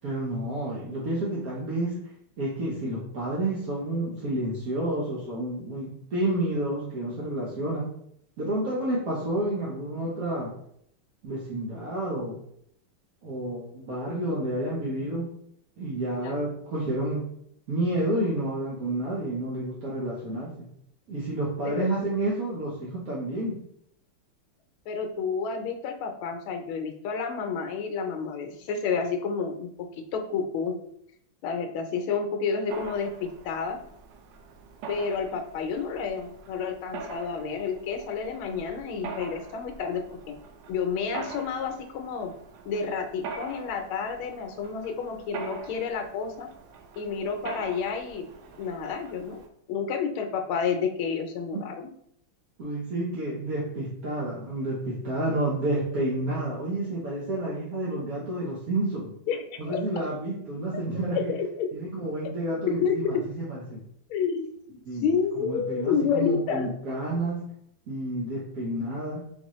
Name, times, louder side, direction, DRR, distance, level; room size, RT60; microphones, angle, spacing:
voice 1, 0.0-2.0 2.4-7.9 8.4-10.6 11.2-12.4 13.2-15.3 15.8-17.2 17.7-20.7 21.1-23.6 52.6-59.1 59.6-61.3 61.7-63.8 64.8-67.4 67.9-69.2, right 1 dB, 55° right, -5 dB, 1.1 m, -30 dB
voice 2, 24.9-29.7 30.1-30.7 31.4-33.8 34.9-40.4 40.7-42.3 42.6-46.5 47.0-48.3 48.6-49.4 49.7-51.9 59.3-59.8 61.3-61.7 62.7-63.2 64.1-66.7, left 6 dB, 75° left, 5 dB, 1.5 m, -30 dB
Mechanisms, 32.7-49.5, right 5 dB, 85° right, 0.9 m, -43 dB
4.2 x 3.9 x 3.0 m, 0.69 s
omnidirectional pair, 2.4 m